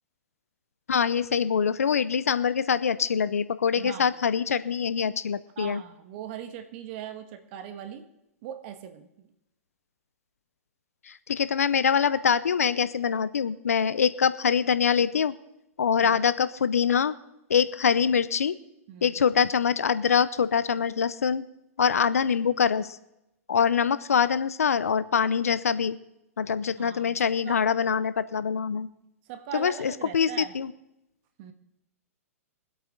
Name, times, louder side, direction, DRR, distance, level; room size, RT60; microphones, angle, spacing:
voice 1, 0.9-5.8 11.1-15.3 15.8-17.2 17.5-18.6 19.0-21.4 21.8-22.9 23.5-26.0 26.4-28.9 29.5-30.7, left 7 dB, 85° left, 16 dB, 0.6 m, -24 dB
voice 2, 3.8-4.2 5.6-8.1 8.4-9.3 16.0-16.2 18.9-19.2 26.8-27.7 29.3-30.6 31.4-31.5, right 9 dB, 45° right, 8 dB, 1.6 m, -40 dB
22.5 x 8.4 x 3.9 m, 0.88 s
hypercardioid pair, 120°, 8 cm